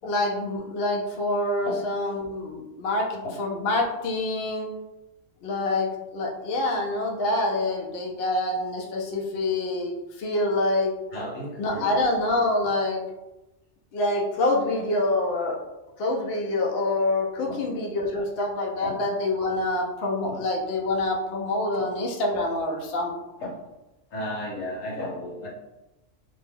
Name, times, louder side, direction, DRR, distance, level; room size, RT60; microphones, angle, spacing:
voice 1, 0.0-4.7 5.4-10.9 11.6-13.0 13.9-15.6 16.0-23.1, left 2 dB, 65° left, 0 dB, 0.7 m, -26 dB
voice 2, 11.1-11.9 17.4-17.7 18.8-19.1 20.2-20.4 23.4-23.6 24.1-25.5, left 1 dB, 80° left, -2 dB, 1.2 m, -34 dB
2.5 x 2.2 x 3.4 m, 1.0 s
omnidirectional pair, 1.3 m